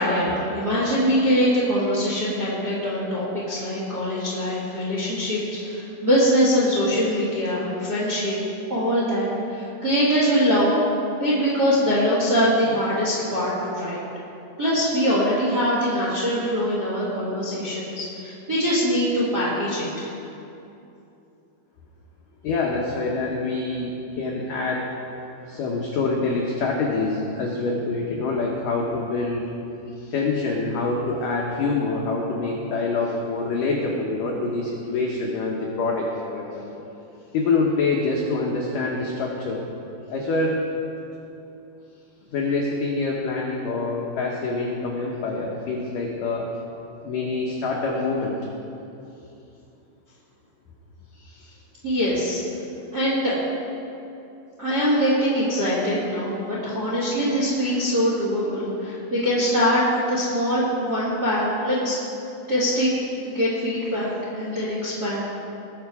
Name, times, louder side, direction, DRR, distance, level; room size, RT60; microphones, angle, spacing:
voice 1, 0.0-8.4 8.7-10.7 11.2-14.0 14.6-20.1 51.8-52.4 52.9-53.3 54.6-62.0 62.5-62.9 63.2-65.3, equal, 55° right, -7 dB, 1.1 m, -23 dB
voice 2, 22.4-24.9 25.5-29.5 30.1-36.9 37.3-39.6 40.1-40.6 42.3-46.5 47.0-48.3, left 3 dB, 90° left, -1 dB, 1.8 m, -25 dB
20.5 x 6.8 x 4.8 m, 2.8 s
omnidirectional pair, 5.4 m